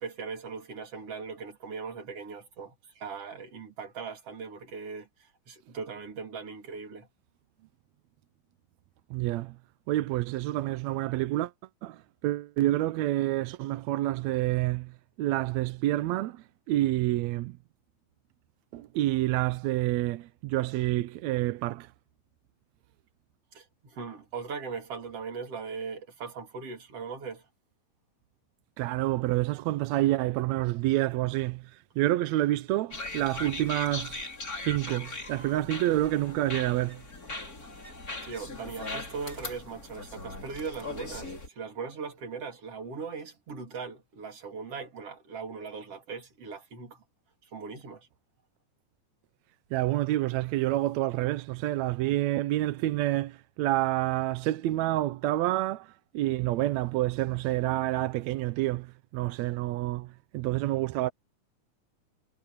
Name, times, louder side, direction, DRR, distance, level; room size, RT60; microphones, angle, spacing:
voice 1, 0.0-7.1 7.6-7.7 23.5-27.5 38.2-47.0 47.5-48.1 59.3-59.4, right 5 dB, 45° right, 4.0 m, -39 dB
voice 2, 9.1-9.6 9.9-11.5 11.8-17.6 18.7-21.9 28.8-34.2 34.6-37.0 49.7-61.1, right 16 dB, 80° right, 1.6 m, -28 dB
sound 1, 32.9-41.5, left 2 dB, 25° left, 4.3 m, -39 dB
omnidirectional pair, 3.8 m